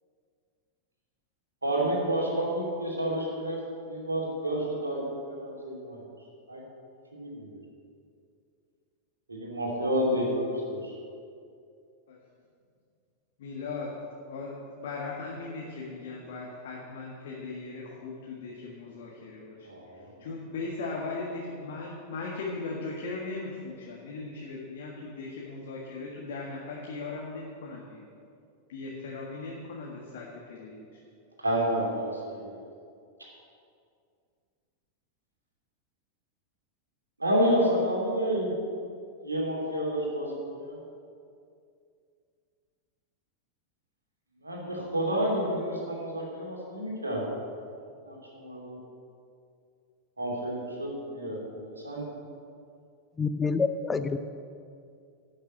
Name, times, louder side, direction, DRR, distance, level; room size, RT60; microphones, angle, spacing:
voice 1, 1.6-3.6 3.9-6.0 6.5-6.6 7.1-7.6 9.3-10.9 19.6-20.1 31.4-32.6 37.2-38.5 39.2-40.8 44.4-47.4 48.0-48.8 50.2-52.1, equal, 80° right, -3 dB, 2.7 m, -30 dB
voice 2, 13.4-13.9 14.2-19.6 20.2-28.0 28.7-30.8, left 3 dB, 55° left, -3 dB, 1.6 m, -38 dB
voice 3, 53.2-54.2, left 4 dB, 15° left, 11 dB, 0.6 m, -27 dB
11.5 x 6.6 x 7.8 m, 2.4 s
figure-of-eight pair, 90°, 0 cm